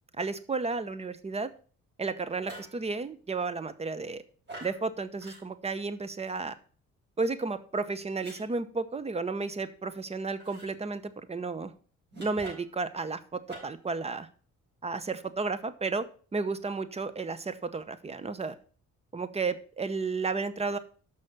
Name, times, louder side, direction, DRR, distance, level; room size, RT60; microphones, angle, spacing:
voice 1, 0.1-1.5 2.0-4.2 4.6-6.5 7.2-11.7 12.2-14.3 14.8-16.1 16.3-18.6 19.1-20.8, right 4 dB, 20° right, 13 dB, 0.8 m, -33 dB
sound 1, 2.4-2.8 4.5-4.8 5.2-5.4 8.2-8.4 10.4-10.7 12.1-12.8 13.5-13.9, right 1 dB, 35° right, 4.5 m, -45 dB
6.3 x 5.6 x 6.3 m, 0.42 s
cardioid pair, 90°, 30 cm